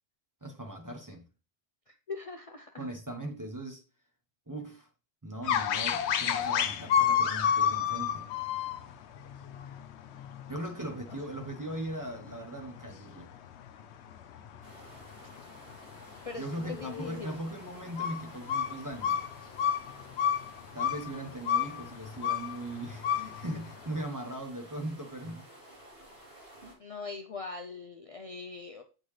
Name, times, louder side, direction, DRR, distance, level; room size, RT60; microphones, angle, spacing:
voice 1, 0.4-1.2 2.8-3.8 4.5-4.9 5.2-8.3 10.5-13.3 16.4-19.2 20.7-25.5, right 1 dB, 20° right, 0.9 m, -39 dB
voice 2, 1.9-2.8 16.2-17.4 26.8-28.8, left 4 dB, 40° left, 0.6 m, -41 dB
sound 1, 5.4-24.0, left 8 dB, 90° left, 0.9 m, -32 dB
sound 2, 14.6-26.7, right 1 dB, 65° right, 2.6 m, -53 dB
8.6 x 3.9 x 3.2 m
omnidirectional pair, 1.1 m